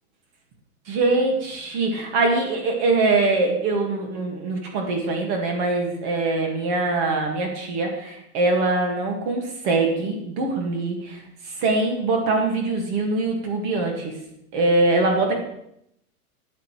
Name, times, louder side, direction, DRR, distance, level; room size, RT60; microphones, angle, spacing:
voice 1, 0.9-11.2 11.6-14.1 14.5-15.4, right 3 dB, 30° right, 2 dB, 2.0 m, -23 dB
12.5 x 8.3 x 3.2 m, 0.77 s
hypercardioid pair, 165°, 45 cm